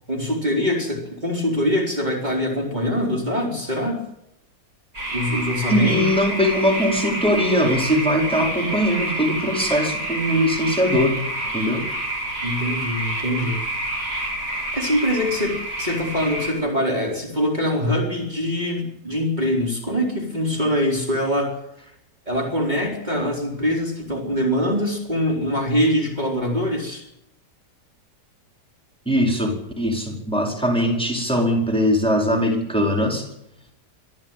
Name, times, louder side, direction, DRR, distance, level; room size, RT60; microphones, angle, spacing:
voice 1, 0.1-4.0 5.1-6.0 12.4-13.6 14.7-21.6 22.3-27.0, equal, 25° right, -1 dB, 4.5 m, -23 dB
sound 1, 4.9-16.5, right 1 dB, 75° right, 7.3 m, -28 dB
voice 2, 5.7-11.2 11.5-11.8 29.0-33.3, equal, 5° left, 1 dB, 4.7 m, -21 dB
25.0 x 13.5 x 9.3 m, 0.80 s
omnidirectional pair, 1.7 m